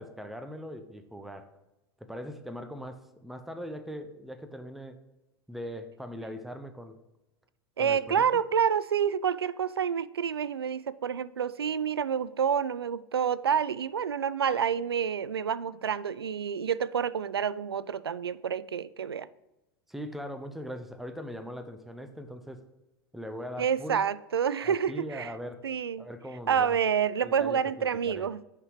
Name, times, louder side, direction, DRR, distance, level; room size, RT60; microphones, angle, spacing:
voice 1, 0.0-1.5 2.0-5.0 5.5-7.0 7.8-8.4 19.9-22.6 23.1-24.0 24.6-25.7 26.0-26.8 27.2-28.3, equal, ahead, 0.9 m, -40 dB
voice 2, 7.8-19.3 23.6-25.3 25.6-26.0 26.5-28.4, right 7 dB, 85° right, 0.4 m, -28 dB
9.7 x 5.8 x 4.8 m
figure-of-eight pair, 85°, 13 cm